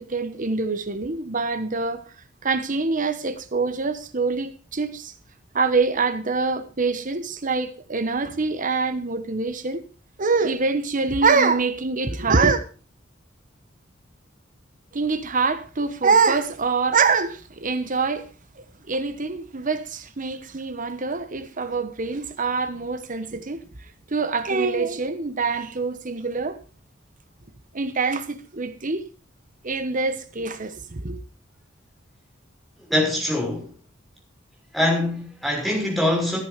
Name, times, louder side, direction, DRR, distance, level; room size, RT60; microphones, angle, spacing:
voice 1, 0.0-2.0 2.4-5.1 5.5-9.9 10.2-12.6 14.9-18.3 18.6-23.6 24.1-26.6 27.7-29.1 29.6-31.2, right 4 dB, 40° right, 1.1 m, -24 dB
voice 2, 32.9-33.7 34.7-36.4, left 1 dB, ahead, 5.9 m, -23 dB
14.5 x 9.9 x 5.0 m
head